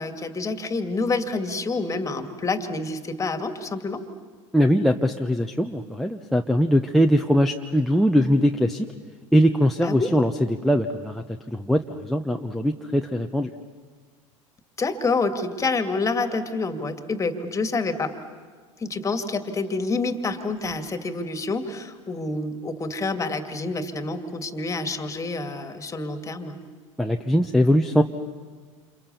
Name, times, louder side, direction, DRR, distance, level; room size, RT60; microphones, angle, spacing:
voice 1, 0.0-4.0 9.8-10.2 14.8-18.2 18.8-26.6, left 3 dB, 20° left, 8 dB, 2.3 m, -28 dB
voice 2, 4.5-8.9 9.3-13.5 27.0-28.0, equal, ahead, 8 dB, 1.0 m, -21 dB
29.0 x 28.5 x 7.0 m, 1.5 s
figure-of-eight pair, 75°, 17 cm